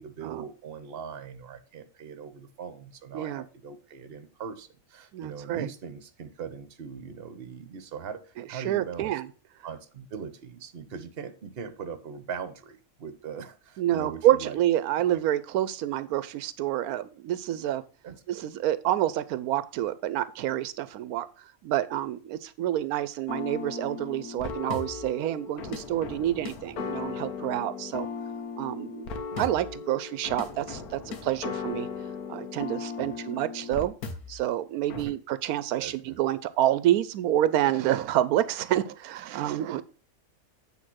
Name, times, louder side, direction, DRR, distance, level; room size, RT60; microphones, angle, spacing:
voice 1, 0.0-9.2 9.6-14.6 18.0-18.5 29.3-29.5 33.0-33.4 34.9-35.1 35.8-36.2, right 6 dB, 45° right, 10 dB, 1.1 m, -40 dB
voice 2, 5.1-5.7 8.6-9.3 13.8-17.8 18.3-21.3 21.6-28.1 28.6-29.1 29.4-31.9 32.3-33.9 34.3-39.8, right 13 dB, 90° right, 14 dB, 1.1 m, -28 dB
sound 1, 23.3-34.5 34.9-35.0, left 5 dB, 90° left, 1.5 m, -37 dB
8.6 x 3.6 x 6.2 m, 0.36 s
omnidirectional pair, 1.5 m